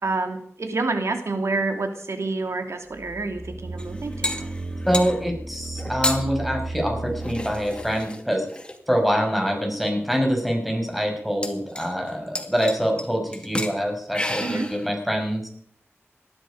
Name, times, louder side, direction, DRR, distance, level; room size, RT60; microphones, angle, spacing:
voice 1, 0.0-4.5 14.4-14.7, right 3 dB, 70° right, 6 dB, 2.7 m, -28 dB
sound 1, 2.9-8.0, right 2 dB, 25° right, 2.9 m, -34 dB
sound 2, 3.8-5.2 5.8-6.2 7.2-8.8 9.6-9.7 10.1-10.2 10.4-10.6 11.4-12.1 12.4-13.0 13.3-13.8 14.1-14.9, left 1 dB, 20° left, 2.3 m, -31 dB
voice 2, 4.9-8.4 8.9-15.5, equal, ahead, 2 dB, 5.9 m, -25 dB
18.5 x 12.5 x 5.1 m, 0.63 s
wide cardioid pair, 55°, 5 cm